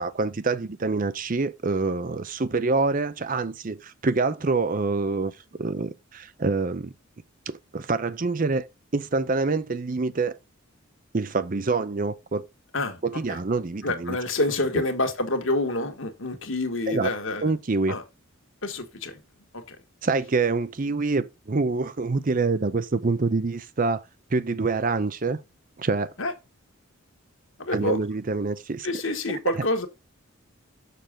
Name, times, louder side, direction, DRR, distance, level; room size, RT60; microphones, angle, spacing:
voice 1, 0.0-5.3 5.6-6.9 7.5-8.7 8.9-10.4 11.1-12.4 13.0-14.2 16.9-17.1 17.4-18.0 20.0-24.0 24.3-25.4 25.8-26.1 27.7-29.0, right 3 dB, 40° right, 0.5 m, -26 dB
voice 2, 13.8-17.5 17.9-18.0 18.6-19.2 19.7-19.8 26.2-26.3 27.6-28.0 28.8-29.9, left 2 dB, 65° left, 1.6 m, -27 dB
6.7 x 6.4 x 3.6 m
head